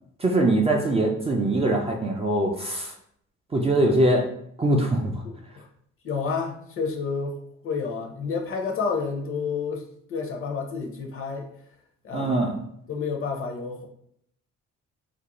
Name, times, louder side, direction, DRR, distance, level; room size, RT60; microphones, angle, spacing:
voice 1, 0.2-2.9 3.5-4.3 4.6-5.2 12.1-12.6, right 1 dB, 20° right, 0 dB, 0.4 m, -22 dB
voice 2, 5.2-5.7 6.0-7.4 7.6-9.8 10.1-11.5 12.0-12.4 12.9-13.9, left 5 dB, 45° left, 0 dB, 0.6 m, -30 dB
2.5 x 2.1 x 2.9 m, 0.69 s
cardioid pair, 90°, 30 cm